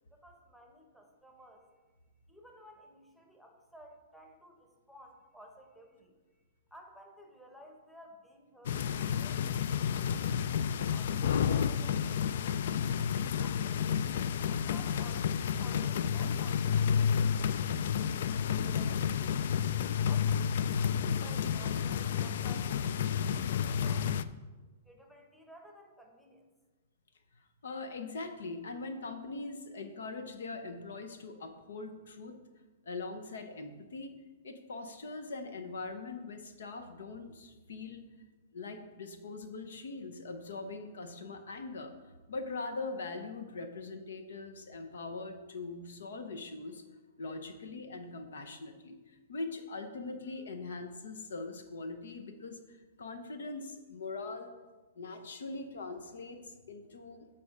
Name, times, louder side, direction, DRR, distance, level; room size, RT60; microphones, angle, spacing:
voice 1, 0.1-1.7 2.3-6.1 6.7-9.6 10.1-12.7 13.4-14.0 14.4-18.1 18.6-19.4 20.0-24.1 24.8-26.5, equal, ahead, 2 dB, 1.0 m, -55 dB
sound 1, 8.6-24.2, left 7 dB, 65° left, 0.3 m, -30 dB
voice 2, 27.6-32.4 32.8-34.1 34.4-38.0 38.5-41.9 42.3-46.8 47.2-54.5 55.0-57.3, left 3 dB, 85° left, 7 dB, 0.9 m, -42 dB
8.6 x 4.3 x 4.7 m, 1.2 s
hypercardioid pair, 140°, 0 cm